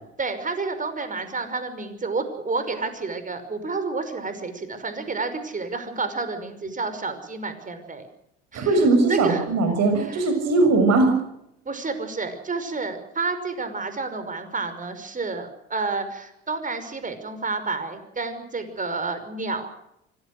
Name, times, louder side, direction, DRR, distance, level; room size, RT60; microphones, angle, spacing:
voice 1, 0.2-8.1 8.5-8.7 9.1-9.5 10.0-10.2 11.7-19.7, right 3 dB, 25° right, 9 dB, 5.6 m, -30 dB
voice 2, 8.5-11.1, right 3 dB, 55° right, 6 dB, 6.8 m, -19 dB
25.0 x 18.5 x 6.5 m, 0.78 s
hypercardioid pair, 70°, 32 cm